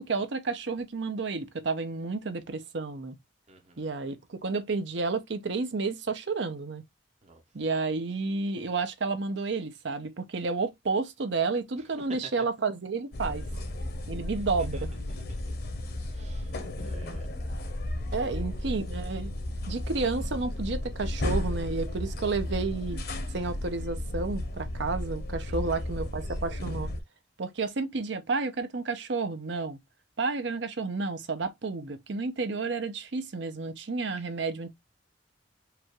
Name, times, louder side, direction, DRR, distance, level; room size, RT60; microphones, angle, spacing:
voice 1, 0.0-3.2 3.8-6.8 7.5-13.4 14.1-14.9 18.1-19.3 19.7-23.0 23.3-26.9 27.4-29.8 30.2-34.7, right 4 dB, 65° right, 0.7 m, -31 dB
voice 2, 3.5-3.9 7.2-7.4 11.8-12.2 14.6-15.4 16.1-17.3 18.2-18.8 25.5-25.9 34.2-34.3, right 1 dB, 35° right, 0.8 m, -50 dB
sound 1, 13.1-27.0, left 1 dB, 55° left, 0.8 m, -34 dB
4.8 x 2.4 x 2.9 m
head